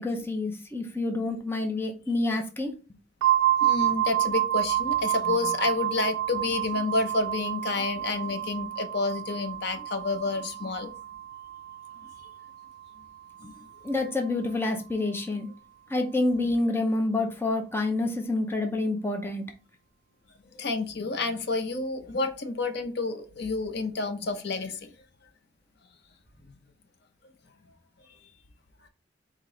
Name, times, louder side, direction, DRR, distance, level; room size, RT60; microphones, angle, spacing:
voice 1, 0.0-2.7 13.8-15.5 15.9-19.4, left 2 dB, 10° left, 0.5 m, -28 dB
sound 1, 3.2-12.8, right 13 dB, 90° right, 0.3 m, -29 dB
voice 2, 3.6-10.9 13.4-13.5 20.5-24.9 26.4-26.5, left 3 dB, 55° left, 0.6 m, -29 dB
4.9 x 2.8 x 3.7 m
head